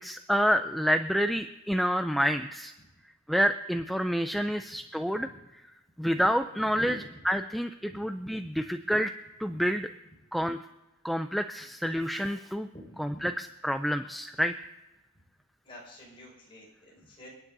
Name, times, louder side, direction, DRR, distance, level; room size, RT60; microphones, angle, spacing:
voice 1, 0.0-2.7 3.3-5.3 6.0-9.1 9.4-9.9 10.3-10.6 11.0-12.7 13.0-14.5, equal, ahead, 7 dB, 0.3 m, -28 dB
voice 2, 12.7-13.3 15.6-17.3, equal, 25° left, -3 dB, 5.4 m, -47 dB
29.0 x 9.9 x 2.7 m, 1.0 s
head